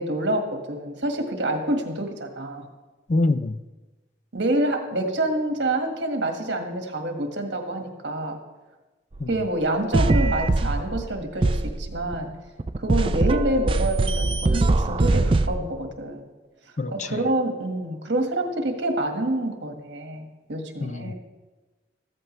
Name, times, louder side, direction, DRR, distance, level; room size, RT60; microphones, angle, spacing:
voice 1, 0.0-2.7 4.3-8.4 9.3-12.3 12.8-16.2 16.9-21.1, right 1 dB, 80° right, 1.7 m, -27 dB
voice 2, 3.1-3.6 9.2-9.3 16.8-17.2 20.8-21.1, left 2 dB, 40° left, 0.4 m, -25 dB
sound 1, 9.1-9.2 9.9-11.1 11.4-12.1 12.6-15.5, right 2 dB, 30° right, 0.4 m, -22 dB
14.5 x 14.0 x 3.2 m
head